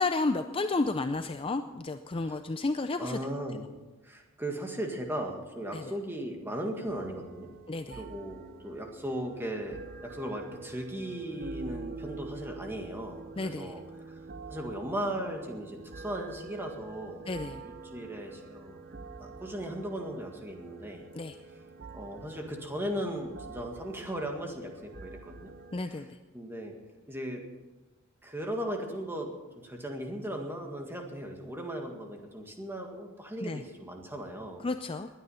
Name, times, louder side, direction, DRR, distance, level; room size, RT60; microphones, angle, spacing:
voice 1, 0.0-3.2 5.7-5.8 7.7-8.0 13.4-13.7 17.3-17.6 21.1-21.4 25.7-26.1 33.4-33.6 34.6-35.1, left 3 dB, 25° left, 8 dB, 0.4 m, -31 dB
voice 2, 3.0-3.7 4.0-7.5 7.9-14.2 14.5-17.2 17.5-18.8 19.2-21.1 21.9-25.5 25.8-26.1 26.3-26.7 27.1-27.4 28.2-29.3 29.5-34.6, right 1 dB, 10° right, 2 dB, 1.8 m, -37 dB
sound 1, 6.9-25.8, right 3 dB, 45° right, 0.7 m, -46 dB
20.5 x 9.4 x 5.6 m, 1.2 s
head